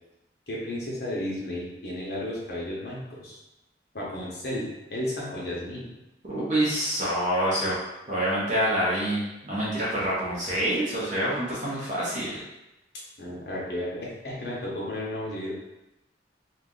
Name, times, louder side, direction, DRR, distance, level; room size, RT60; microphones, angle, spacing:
voice 1, 0.5-3.4 3.9-6.0 13.2-15.5, left 1 dB, 65° left, -4 dB, 1.0 m, -33 dB
voice 2, 6.2-7.8 8.1-12.4, right 1 dB, 45° right, -8 dB, 0.9 m, -26 dB
2.8 x 2.5 x 3.7 m, 0.96 s
head